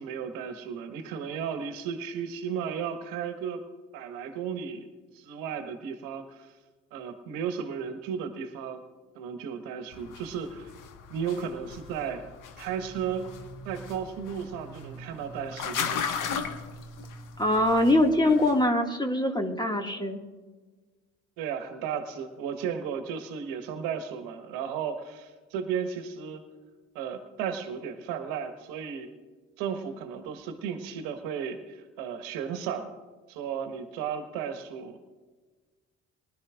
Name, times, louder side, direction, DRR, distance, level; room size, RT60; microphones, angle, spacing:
voice 1, 0.0-3.6 3.9-4.9 5.1-6.5 6.9-8.8 9.1-10.7 11.1-12.2 12.6-13.3 13.6-16.1 21.4-26.4 26.9-29.1 29.6-32.9 33.3-35.0, right 7 dB, 65° right, 6 dB, 1.4 m, -34 dB
sound 1, 9.9-18.6, left 6 dB, 60° left, 1.5 m, -37 dB
voice 2, 17.4-20.2, left 1 dB, 10° left, 4 dB, 2.0 m, -23 dB
24.0 x 11.5 x 2.5 m, 1.4 s
figure-of-eight pair, 50°, 36 cm